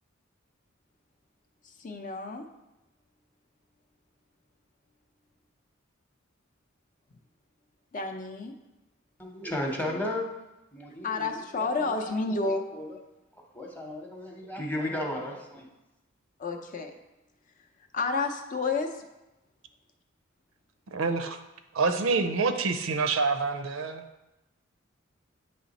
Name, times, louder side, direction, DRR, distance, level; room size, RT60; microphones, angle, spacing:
voice 1, 1.8-2.5 7.9-8.5 11.0-12.6 16.4-16.9 17.9-19.1, left 3 dB, 40° left, 3 dB, 0.6 m, -30 dB
voice 2, 9.2-10.3 10.7-12.2 12.7-13.0 13.5-15.7, left 1 dB, 10° left, 0 dB, 0.9 m, -34 dB
voice 3, 20.9-21.4 21.7-24.0, right 4 dB, 80° right, 8 dB, 0.5 m, -27 dB
8.5 x 3.3 x 4.1 m, 0.98 s
head